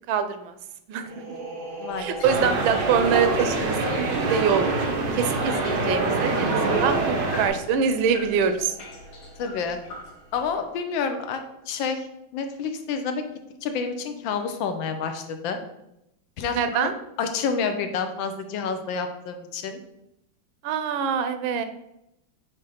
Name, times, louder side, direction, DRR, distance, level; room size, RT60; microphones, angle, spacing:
voice 1, 0.1-0.5 0.9-1.1 2.0-3.7 4.3-4.7 5.2-8.7 16.5-16.9 20.6-21.6, right 7 dB, 90° right, 9 dB, 1.4 m, -24 dB
sound 1, 1.0-10.5, right 3 dB, 45° right, 1.4 m, -41 dB
voice 2, 1.8-2.2 9.4-9.8 10.3-12.1 12.3-13.2 13.6-15.6 16.4-16.9 17.2-19.8, left 5 dB, 75° left, 7 dB, 1.4 m, -29 dB
sound 2, 1.9-10.5, left 2 dB, 55° left, 1.3 m, -43 dB
sound 3, 2.2-7.5, right 3 dB, 70° right, 1.5 m, -25 dB
5.3 x 3.4 x 5.7 m, 0.83 s
omnidirectional pair, 2.1 m